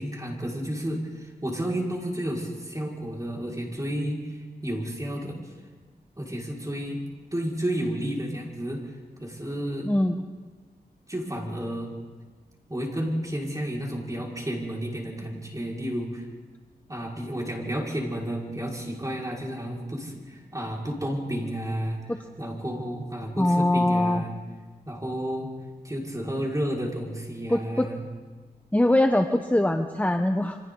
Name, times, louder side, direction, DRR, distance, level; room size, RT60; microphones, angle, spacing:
voice 1, 0.0-5.4 6.2-7.0 7.3-8.9 9.2-9.9 11.1-11.9 12.7-16.2 16.9-22.1 22.4-24.3 24.9-25.5 25.8-28.0, equal, 20° right, -2 dB, 5.3 m, -31 dB
voice 2, 9.8-10.2 23.4-24.2 27.5-27.9 28.7-30.6, left 1 dB, 10° left, 6 dB, 1.0 m, -22 dB
28.5 x 25.0 x 4.0 m, 1.4 s
cardioid pair, 60°, 17 cm